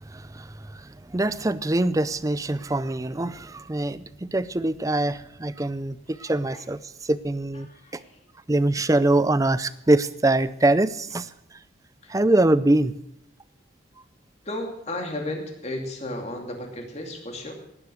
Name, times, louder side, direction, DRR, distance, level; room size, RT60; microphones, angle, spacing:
voice 1, 0.0-8.0 8.5-11.3 12.1-12.9, right 2 dB, 15° right, 16 dB, 0.5 m, -24 dB
voice 2, 6.2-6.7 7.5-8.2 12.0-12.2 14.4-17.5, left 1 dB, 35° left, 2 dB, 2.6 m, -34 dB
18.0 x 10.0 x 6.4 m, 0.81 s
head